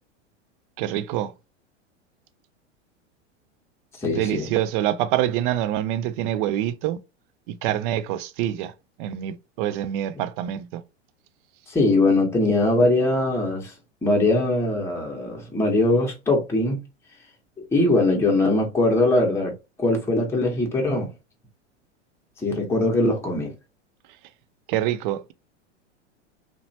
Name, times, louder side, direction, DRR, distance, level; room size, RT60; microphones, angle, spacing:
voice 1, 0.8-1.3 4.1-7.0 7.5-8.7 9.0-10.8 24.7-25.3, right 12 dB, 45° right, 0.4 m, -26 dB
voice 2, 4.0-4.5 11.7-13.7 14.0-16.8 17.7-19.5 19.8-21.1 22.4-23.5, left 2 dB, 5° left, 0.9 m, -21 dB
2.9 x 2.1 x 2.7 m
hypercardioid pair, 100°, 36 cm